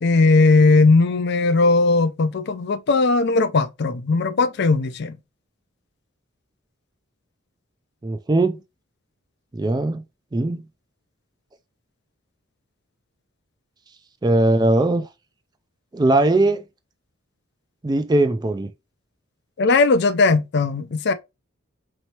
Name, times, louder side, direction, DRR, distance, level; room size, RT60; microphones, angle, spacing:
voice 1, 0.0-5.2 19.6-21.1, left 3 dB, 55° left, 0.4 m, -18 dB
voice 2, 8.0-8.6 9.5-10.0 10.3-10.6 14.2-15.1 15.9-16.6 17.8-18.7, right 2 dB, 20° right, 0.3 m, -19 dB
4.2 x 3.1 x 2.8 m
head